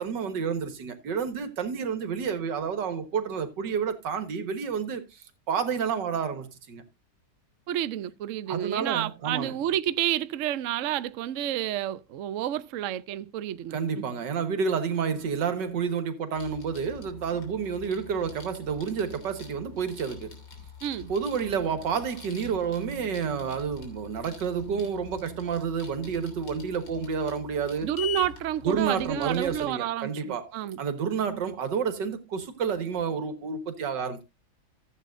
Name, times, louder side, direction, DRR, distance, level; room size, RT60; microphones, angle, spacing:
voice 1, 0.0-6.8 8.5-9.5 13.7-20.4 21.1-27.9 28.6-34.2, right 6 dB, 90° right, 2.0 m, -30 dB
voice 2, 7.7-14.1 20.8-21.1 27.8-30.8, right 11 dB, 60° right, 0.8 m, -30 dB
sound 1, 16.3-29.7, left 7 dB, 90° left, 3.7 m, -44 dB
14.5 x 8.4 x 2.5 m
omnidirectional pair, 1.9 m